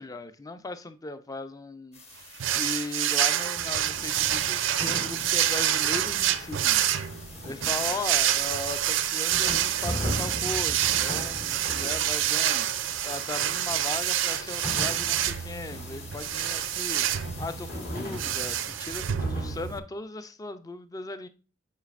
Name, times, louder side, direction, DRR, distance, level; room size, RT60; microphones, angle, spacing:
voice 1, 0.0-2.3 2.5-6.9 7.4-12.7 13.0-17.1 17.4-21.3, left 3 dB, 20° left, 0.4 m, -37 dB
sound 1, 1.9-18.7, left 3 dB, 35° left, 1.3 m, -48 dB
sound 2, 2.4-19.8, right 11 dB, 75° right, 0.4 m, -27 dB
sound 3, 3.6-19.8, equal, 50° left, 1.6 m, -39 dB
8.3 x 4.8 x 2.4 m
head